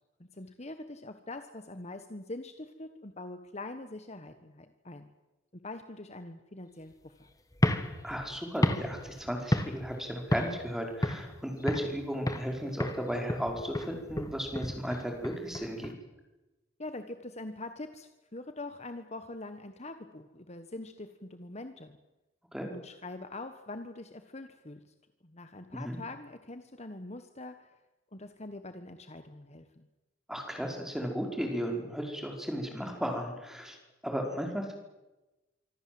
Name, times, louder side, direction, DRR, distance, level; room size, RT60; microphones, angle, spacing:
voice 1, 0.2-5.1 5.5-7.3 16.8-22.0 22.7-24.8 25.2-27.7 28.1-29.9, left 2 dB, 35° left, 8 dB, 1.4 m, -43 dB
sound 1, 7.5-10.0 10.3-10.7 11.0-12.0 12.3-12.5 12.8-15.9, left 1 dB, 20° left, 2.0 m, -31 dB
voice 2, 8.0-15.9 22.5-22.7 25.7-26.0 30.3-33.8 34.0-34.7, equal, ahead, 2 dB, 5.0 m, -35 dB
25.5 x 25.5 x 7.9 m, 1.1 s
head